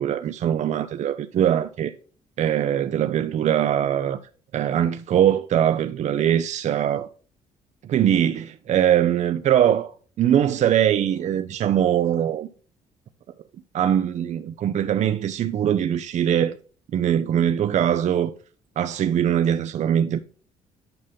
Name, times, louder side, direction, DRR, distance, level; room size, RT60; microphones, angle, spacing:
voice 1, 0.0-1.9 2.4-4.2 4.5-7.1 7.8-9.9 10.2-12.5 13.7-16.6 16.9-18.3 18.8-20.2, right 10 dB, 60° right, 0.6 m, -22 dB
9.2 x 5.3 x 3.5 m
supercardioid pair, 70°, 14 cm